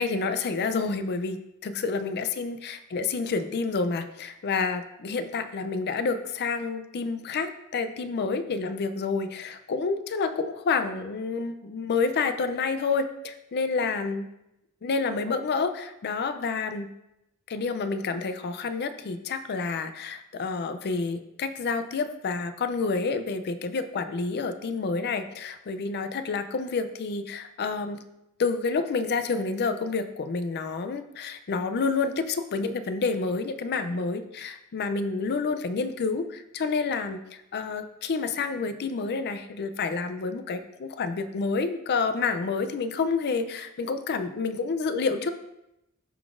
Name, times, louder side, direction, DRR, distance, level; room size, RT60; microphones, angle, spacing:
voice 1, 0.0-14.3 14.8-16.9 17.5-28.0 28.4-45.3, left 4 dB, 50° left, 10 dB, 0.4 m, -29 dB
10.5 x 3.8 x 2.5 m, 0.86 s
head